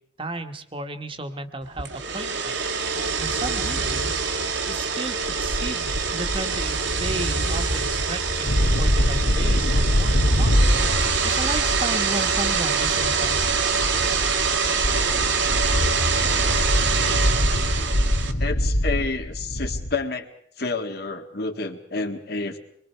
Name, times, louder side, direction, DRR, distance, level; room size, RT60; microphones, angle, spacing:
voice 1, 0.2-4.4 4.7-13.9, right 2 dB, 25° right, 7 dB, 1.4 m, -34 dB
sound 1, 1.8-18.3, right 5 dB, 70° right, 2.0 m, -25 dB
sound 2, 5.3-19.9, equal, 90° left, 2.6 m, -24 dB
voice 2, 18.4-20.3 20.6-22.6, left 3 dB, 55° left, 5 dB, 1.9 m, -29 dB
25.5 x 23.0 x 4.6 m, 0.69 s
head